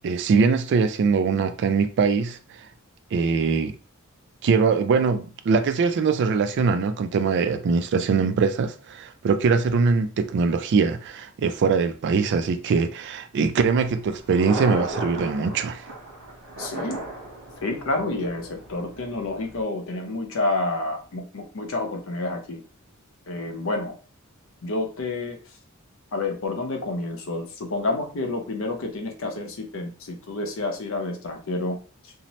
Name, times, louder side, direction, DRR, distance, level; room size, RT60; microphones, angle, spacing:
voice 1, 0.0-2.4 3.1-3.7 4.4-15.8, right 5 dB, 55° right, 0.3 m, -22 dB
Thunder, 13.9-19.6, right 2 dB, 70° right, 1.1 m, -35 dB
voice 2, 16.6-17.0 17.6-22.6 23.3-24.0 24.6-25.4 26.1-32.1, left 2 dB, 65° left, 0.6 m, -29 dB
2.7 x 2.0 x 2.9 m
head